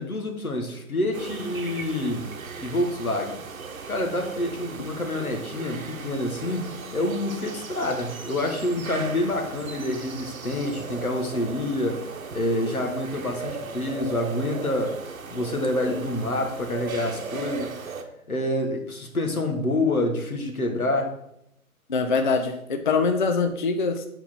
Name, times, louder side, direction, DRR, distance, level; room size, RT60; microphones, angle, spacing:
voice 1, 0.0-2.3 2.6-3.4 3.9-15.0 15.3-17.9 18.3-21.1, left 1 dB, 85° left, 2 dB, 1.5 m, -27 dB
sound 1, 1.1-18.0, right 4 dB, 70° right, 0.9 m, -37 dB
voice 2, 21.9-24.1, left 4 dB, 40° left, 7 dB, 0.4 m, -23 dB
6.4 x 4.4 x 4.2 m, 0.77 s
figure-of-eight pair, 140°, 42 cm